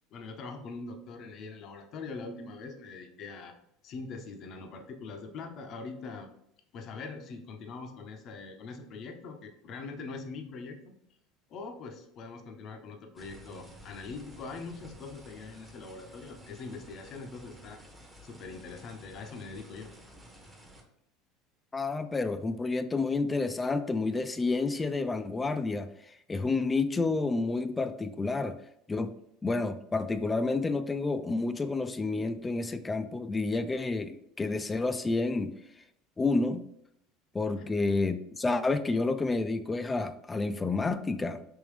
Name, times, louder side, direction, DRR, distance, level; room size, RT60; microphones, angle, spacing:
voice 1, 0.1-3.5 3.8-6.3 6.7-10.9 11.5-17.8 18.2-19.9, left 4 dB, 50° left, 4 dB, 0.6 m, -42 dB
sound 1, 13.2-20.8, equal, 15° right, 0.9 m, -52 dB
voice 2, 21.7-28.6 28.9-29.1 29.4-35.8 36.2-36.7 37.3-41.5, left 3 dB, 20° left, 11 dB, 0.3 m, -30 dB
3.6 x 2.9 x 3.1 m, 0.74 s
supercardioid pair, 95°, 0 cm